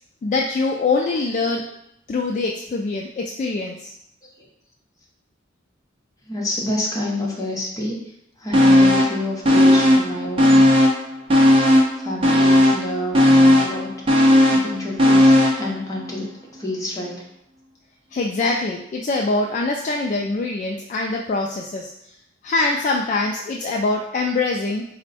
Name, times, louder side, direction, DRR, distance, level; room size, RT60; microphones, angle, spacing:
voice 1, 0.2-1.7 2.1-3.9 18.1-21.9 22.4-24.8, left 3 dB, 40° left, 0 dB, 0.3 m, -23 dB
voice 2, 6.3-8.0 8.4-10.6 12.0-13.9 14.5-16.2 16.6-17.2, left 1 dB, 20° left, -4 dB, 0.9 m, -28 dB
sound 1, 8.5-9.2 9.4-11.0 11.3-15.7 16.0-16.1, left 1 dB, 30° right, 0.6 m, -15 dB
4.3 x 2.1 x 4.1 m, 0.77 s
head